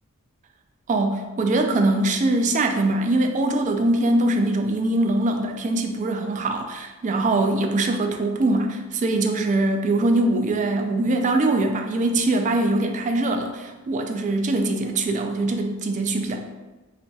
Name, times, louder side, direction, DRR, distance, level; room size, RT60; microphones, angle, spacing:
voice 1, 0.9-16.4, right 2 dB, 35° right, 5 dB, 0.3 m, -22 dB
4.1 x 3.0 x 2.3 m, 1.1 s
head